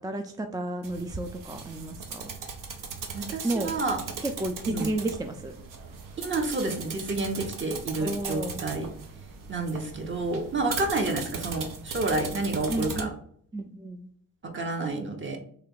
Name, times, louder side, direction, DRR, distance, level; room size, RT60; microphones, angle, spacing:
voice 1, 0.0-2.3 3.4-3.7 4.2-5.5 8.0-8.6 12.7-13.1 13.5-14.1, right 1 dB, 10° right, 5 dB, 0.3 m, -32 dB
sound 1, 0.8-13.0, right 5 dB, 70° right, 0.8 m, -38 dB
voice 2, 3.1-4.0 4.7-4.9 6.2-8.9 9.5-13.1 14.4-15.4, right 2 dB, 35° right, 4 dB, 0.9 m, -29 dB
3.2 x 2.9 x 3.8 m, 0.62 s
cardioid pair, 100°, 33 cm